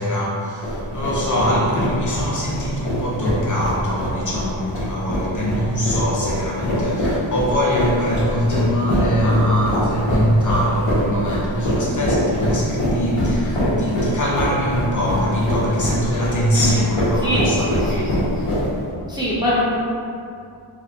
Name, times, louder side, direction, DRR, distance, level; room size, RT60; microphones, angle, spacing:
voice 1, 0.0-18.1, equal, 40° left, -5 dB, 0.6 m, -22 dB
sound 1, 0.6-18.9, equal, 90° left, 1.3 m, -23 dB
voice 2, 1.2-1.6 16.5-16.9 17.2-18.1 19.1-19.6, equal, 10° right, -9 dB, 0.4 m, -24 dB
3.2 x 3.0 x 2.5 m, 2.5 s
wide cardioid pair, 150°, 50 cm